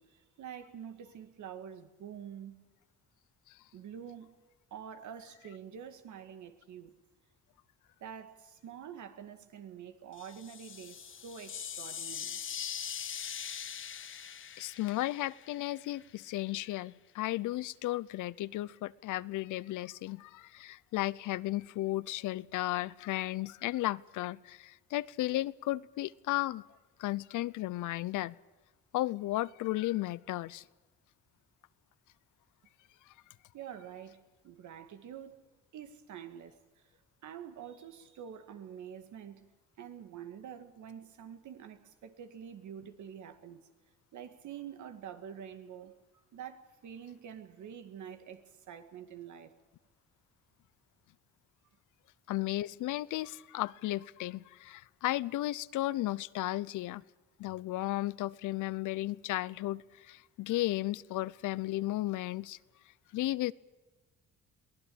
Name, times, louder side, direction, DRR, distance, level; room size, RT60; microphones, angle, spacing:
voice 1, 0.0-2.6 3.7-4.3 4.7-6.9 8.0-12.4 33.5-34.2 34.4-35.4 35.7-36.6 37.2-39.5 39.8-43.7 44.1-45.9 46.3-49.5, right 8 dB, 75° right, 2.1 m, -47 dB
sound 1, 10.1-16.0, left 8 dB, 40° left, 0.9 m, -42 dB
voice 2, 14.6-26.6 27.0-28.4 28.9-30.6 52.3-57.0 57.4-62.6 63.1-63.5, left 16 dB, 80° left, 0.7 m, -34 dB
23.0 x 17.0 x 8.7 m
cardioid pair, 90°, 30 cm